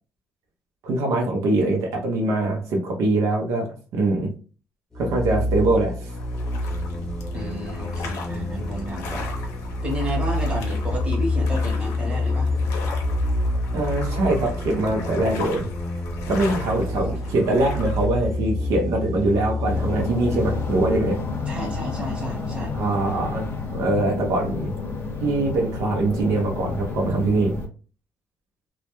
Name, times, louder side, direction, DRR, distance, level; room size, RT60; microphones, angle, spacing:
voice 1, 0.8-4.3 5.0-6.1 13.7-15.7 16.3-21.2 22.7-24.7 25.2-27.6, right 2 dB, 75° right, 1 dB, 0.5 m, -23 dB
sound 1, 4.9-22.3, left 2 dB, 10° left, 0.5 m, -28 dB
sound 2, 6.1-18.1, left 2 dB, 85° left, 0.6 m, -36 dB
voice 2, 7.3-9.3 9.8-12.5 16.7-17.4 21.5-22.8, equal, 20° right, -1 dB, 0.9 m, -32 dB
sound 3, 19.7-27.7, left 4 dB, 45° left, 0.8 m, -30 dB
2.1 x 2.1 x 2.9 m, 0.38 s
cardioid pair, 130°, 5 cm